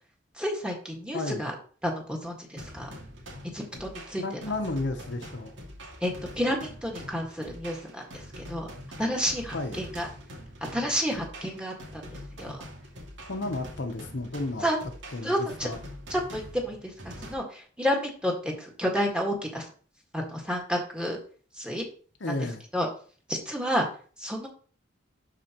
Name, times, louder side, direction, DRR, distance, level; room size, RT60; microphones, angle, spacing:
voice 1, 0.3-1.6 1.8-2.9 3.5-4.2 6.0-8.7 9.0-10.1 10.6-12.6 14.6-14.8 15.2-15.7 16.1-19.6 20.1-21.2 21.5-21.8 22.3-22.5 22.7-22.9 23.3-23.9 24.2-24.5, equal, 5° right, 0 dB, 1.8 m, -30 dB
voice 2, 1.1-1.5 4.2-5.6 6.1-6.3 9.5-9.8 12.4-12.6 13.3-14.7 15.1-15.8 22.2-22.6, left 2 dB, 70° left, 5 dB, 1.0 m, -33 dB
sound 1, 2.6-17.3, equal, 90° right, 2.3 m, -44 dB
12.0 x 4.7 x 3.0 m, 0.42 s
head